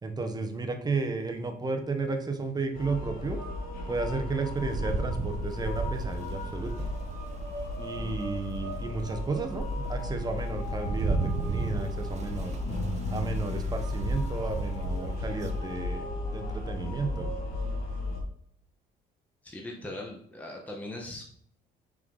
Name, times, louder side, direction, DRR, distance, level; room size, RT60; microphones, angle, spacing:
voice 1, 0.0-3.4 3.9-6.9 7.8-12.6 13.1-16.0 16.3-17.3, right 3 dB, 25° right, 6 dB, 1.0 m, -33 dB
sound 1, 2.7-18.2, left 2 dB, 60° left, 2.3 m, -35 dB
Rain, 4.6-8.1 8.6-8.7 9.2-15.8, right 3 dB, 40° right, 0.8 m, -35 dB
voice 2, 19.4-21.2, left 1 dB, 10° left, 0 dB, 1.0 m, -40 dB
5.8 x 4.7 x 3.8 m, 0.65 s
cardioid pair, 110°, 17 cm